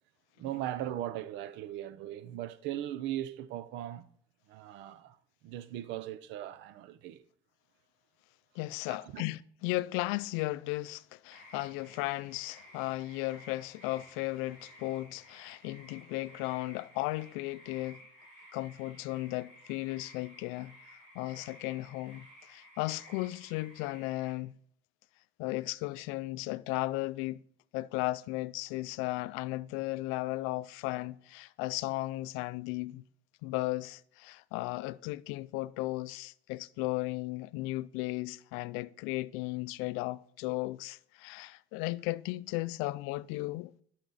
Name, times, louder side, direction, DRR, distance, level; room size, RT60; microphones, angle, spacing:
voice 1, 0.4-4.1 4.5-5.2 5.4-7.2 8.9-9.2, right 12 dB, 65° right, 0.6 m, -38 dB
voice 2, 8.5-18.0 18.5-20.7 21.1-24.5 25.4-27.4 27.7-33.0 33.4-43.7, left 19 dB, 85° left, 0.4 m, -35 dB
sound 1, 11.3-24.3, equal, 40° right, 4.2 m, -55 dB
10.0 x 6.1 x 4.0 m
cardioid pair, 150°, 20 cm